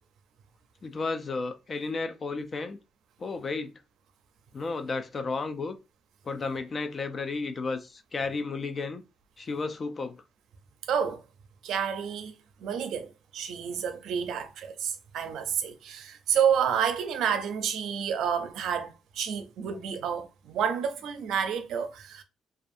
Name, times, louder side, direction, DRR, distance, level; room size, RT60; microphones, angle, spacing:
voice 1, 0.8-2.8 3.2-3.7 4.5-5.8 6.2-9.0 9.4-10.2, left 3 dB, 40° left, 0.4 m, -33 dB
voice 2, 10.9-11.2 11.6-12.3 12.6-22.2, right 8 dB, 80° right, 0.4 m, -29 dB
2.5 x 2.4 x 2.5 m
cardioid pair, 90°, 0 cm